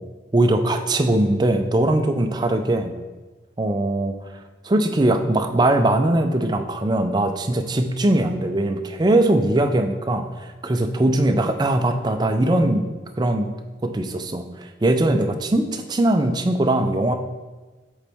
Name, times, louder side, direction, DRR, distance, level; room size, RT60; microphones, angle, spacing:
voice 1, 0.3-2.9 3.6-4.1 4.6-12.9 13.2-13.5 13.8-17.1, right 1 dB, 20° right, 6 dB, 0.4 m, -20 dB
7.1 x 4.0 x 3.5 m, 1.2 s
head